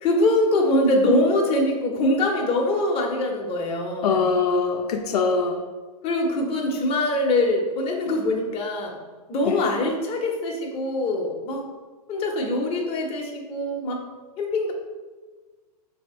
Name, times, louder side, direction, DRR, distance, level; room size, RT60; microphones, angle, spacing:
voice 1, 0.0-4.3 6.0-8.9 9.3-11.6 12.1-14.0 14.4-14.7, left 1 dB, 30° left, 0 dB, 0.8 m, -23 dB
voice 2, 4.0-5.6 9.4-9.7, left 4 dB, 80° left, 3 dB, 0.5 m, -23 dB
3.3 x 2.7 x 4.2 m, 1.3 s
hypercardioid pair, 115°, 20 cm